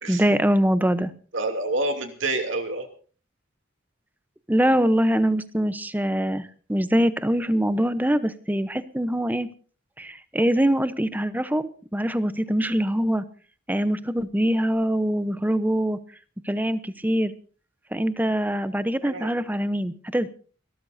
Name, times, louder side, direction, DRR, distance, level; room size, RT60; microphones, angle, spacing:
voice 1, 0.1-1.1 4.5-9.5 10.0-13.3 13.7-16.0 16.5-17.3 17.9-20.3, equal, 10° right, 13 dB, 0.8 m, -23 dB
voice 2, 1.3-2.9 19.0-19.3, right 2 dB, 65° right, 5 dB, 2.8 m, -27 dB
29.5 x 13.5 x 2.7 m, 0.40 s
head